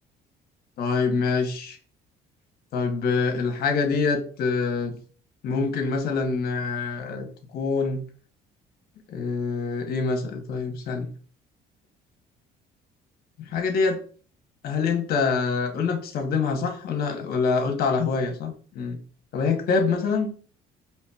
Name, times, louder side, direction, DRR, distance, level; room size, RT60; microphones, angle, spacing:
voice 1, 0.8-1.8 2.7-5.0 5.4-7.3 7.5-8.0 9.1-11.1 13.4-14.0 14.6-19.0 19.3-20.3, left 4 dB, 65° left, 5 dB, 0.9 m, -25 dB
4.6 x 3.0 x 2.2 m, 0.42 s
cardioid pair, 110°, 17 cm